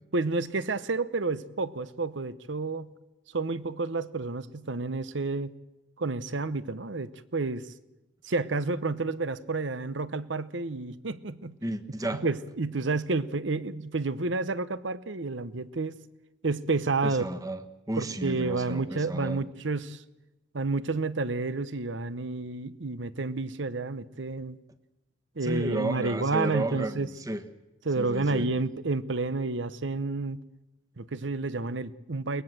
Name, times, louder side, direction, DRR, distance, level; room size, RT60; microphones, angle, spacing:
voice 1, 0.1-2.9 3.3-5.5 6.0-7.7 8.2-11.6 12.1-16.0 16.4-17.2 18.0-20.0 20.5-24.6 25.4-27.1 27.8-30.4 31.0-32.4, right 3 dB, 75° right, 15 dB, 0.9 m, -30 dB
voice 2, 11.6-12.2 17.0-17.6 17.9-19.4 25.4-27.4 28.0-28.5, right 1 dB, 20° right, 8 dB, 1.3 m, -33 dB
22.5 x 19.5 x 7.6 m, 0.99 s
head